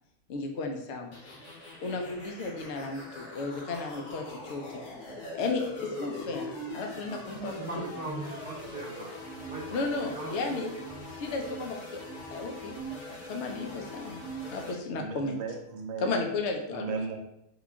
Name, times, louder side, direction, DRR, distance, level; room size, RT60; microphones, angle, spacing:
voice 1, 0.3-1.3 1.8-4.8 5.3-5.6 6.0-7.9 9.7-10.7 11.2-12.0 12.3-12.8 13.3-14.2 14.5-15.4 16.0-16.9, left 3 dB, 65° left, 3 dB, 0.7 m, -34 dB
sound 1, 1.1-14.7, left 1 dB, 80° left, 1.6 m, -41 dB
voice 2, 7.4-9.2 9.5-11.0, right 2 dB, 10° right, -6 dB, 1.0 m, -40 dB
voice 3, 14.9-16.4 16.7-17.2, right 4 dB, 85° right, 2 dB, 1.2 m, -36 dB
3.7 x 2.3 x 3.5 m, 0.86 s
omnidirectional pair, 1.6 m